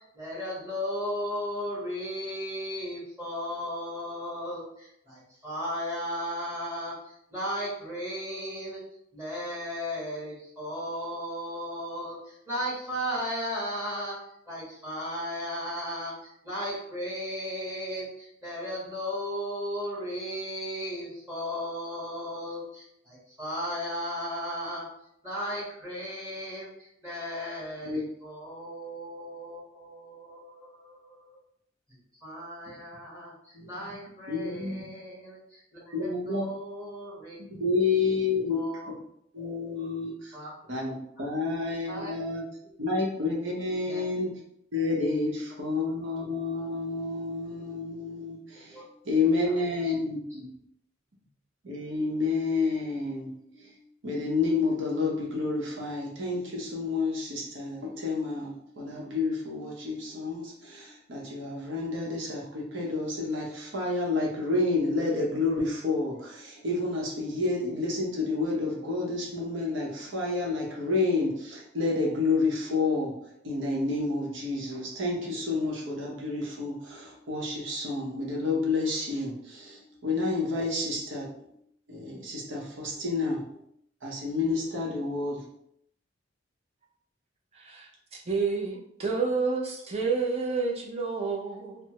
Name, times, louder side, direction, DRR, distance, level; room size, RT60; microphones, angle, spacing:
voice 1, 0.2-4.6 5.1-5.2 5.4-6.9 7.3-8.8 9.1-12.2 12.5-14.2 14.5-16.1 16.4-24.9 25.2-26.7 27.0-31.3 32.2-33.3 33.7-35.4 35.7-37.3 38.2-38.9 40.3-40.5 41.2-41.3 41.9-42.1 43.9-44.0 45.2-45.3 48.7-48.8, equal, 15° right, -7 dB, 1.3 m, -35 dB
voice 2, 33.5-33.9 34.3-34.8 35.9-36.5 37.6-38.6 39.3-40.4 40.7-42.4 42.8-44.4 44.7-50.5 51.6-53.8 54.0-81.4 81.9-83.6 84.0-85.4, left 3 dB, 75° right, -2 dB, 0.8 m, -30 dB
voice 3, 87.5-87.9 88.3-91.8, right 4 dB, 35° right, -2 dB, 0.6 m, -29 dB
3.3 x 2.0 x 2.9 m, 0.73 s
head